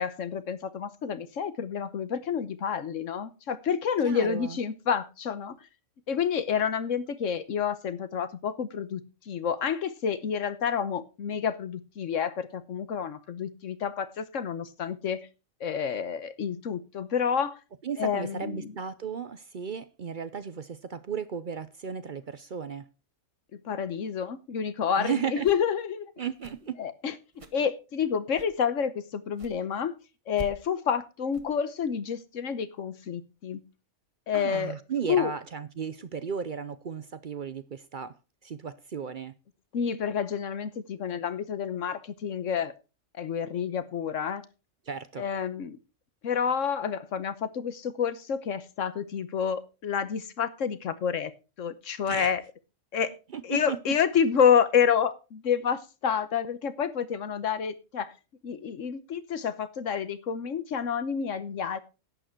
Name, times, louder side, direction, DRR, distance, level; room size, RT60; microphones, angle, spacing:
voice 1, 0.0-5.5 6.1-9.0 9.3-15.3 15.6-17.6 18.0-18.7 23.6-26.1 26.8-27.1 27.5-29.9 30.3-33.6 34.3-34.8 35.1-35.3 39.7-42.7 43.2-44.4 45.2-45.8 46.2-51.3 51.6-52.4 52.9-53.1 53.4-58.1 58.4-61.8, left 7 dB, 80° left, 1.3 m, -29 dB
voice 2, 4.0-4.6 17.8-22.9 25.0-25.5 26.2-26.8 34.3-38.2 38.4-39.3 44.9-45.2 52.1-52.3 53.3-53.8, right 7 dB, 50° right, 0.7 m, -35 dB
sound 1, 25.3-25.8 26.3-26.7 27.3-27.7 28.3-28.6 29.3-29.6 30.3-30.7 31.3-31.5, right 2 dB, 25° right, 1.1 m, -46 dB
11.5 x 8.9 x 4.5 m
omnidirectional pair, 1.3 m